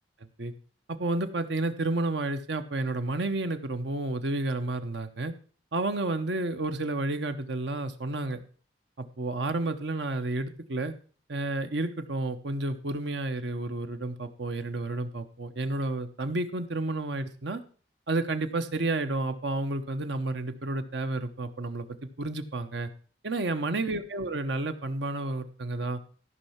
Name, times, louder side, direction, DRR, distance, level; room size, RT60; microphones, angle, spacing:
voice 1, 0.9-5.3 5.7-8.4 9.0-10.9 11.3-17.6 18.1-22.9 23.2-26.0, right 2 dB, 70° right, 8 dB, 0.9 m, -31 dB
14.0 x 5.5 x 5.7 m, 0.41 s
head